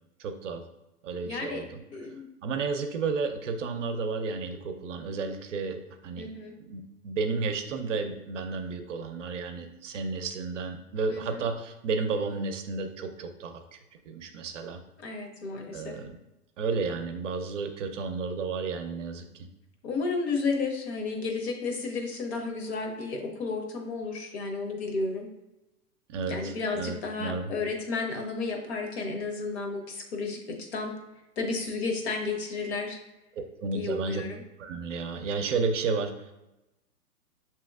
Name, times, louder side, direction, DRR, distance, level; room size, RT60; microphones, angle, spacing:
voice 1, 0.2-0.6 1.0-1.8 2.4-6.3 6.6-13.6 14.0-14.8 15.7-16.2 16.6-19.5 26.1-27.5 33.6-34.2 34.6-36.3, right 4 dB, 55° right, 6 dB, 0.6 m, -32 dB
voice 2, 1.2-1.6 1.9-2.3 6.2-6.5 11.1-11.5 15.0-16.0 19.8-25.3 26.3-31.0 31.4-33.0 33.7-34.4, left 4 dB, 45° left, 3 dB, 0.9 m, -32 dB
6.9 x 3.0 x 2.3 m, 0.95 s
figure-of-eight pair, 120°, 46 cm